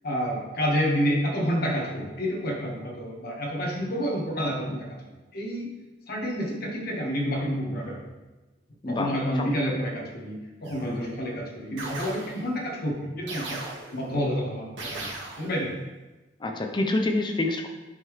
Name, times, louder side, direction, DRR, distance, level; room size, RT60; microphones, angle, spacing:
voice 1, 0.0-5.0 5.3-5.7 6.1-8.0 8.9-13.6 13.9-15.7, equal, 55° left, -2 dB, 1.3 m, -29 dB
voice 2, 8.8-9.5 10.8-11.1 16.4-17.7, left 2 dB, 25° left, 4 dB, 0.6 m, -27 dB
sound 1, 10.6-11.2 11.8-12.6 13.3-14.1 14.8-15.6, right 2 dB, 80° right, 1.4 m, -38 dB
8.3 x 3.8 x 3.1 m, 1.1 s
head